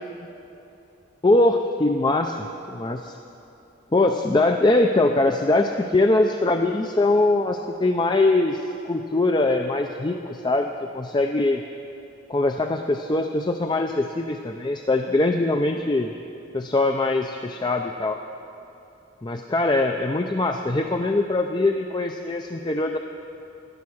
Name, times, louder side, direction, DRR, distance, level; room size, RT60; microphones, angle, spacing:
voice 1, 1.2-3.2 3.9-11.6 12.3-16.1 16.5-18.2 19.2-23.0, left 2 dB, 20° left, 5 dB, 0.4 m, -22 dB
17.0 x 11.5 x 6.3 m, 2.9 s
head